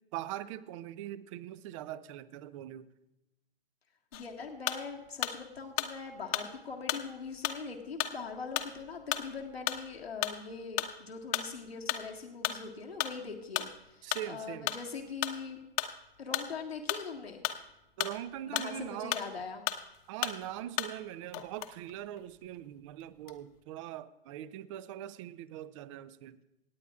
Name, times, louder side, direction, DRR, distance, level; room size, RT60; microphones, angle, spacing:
voice 1, 0.1-2.9 14.0-14.7 18.0-19.2 20.1-26.4, right 12 dB, 35° right, 0.6 m, -42 dB
voice 2, 4.1-15.6 16.2-17.4 18.5-19.7, left 5 dB, 85° left, 1.8 m, -42 dB
sound 1, 4.1-5.4 5.8-19.4 19.7-21.1 21.3-22.6 23.0-23.6, left 13 dB, 40° left, 1.0 m, -35 dB
27.0 x 9.2 x 2.4 m
hypercardioid pair, 125°, 30 cm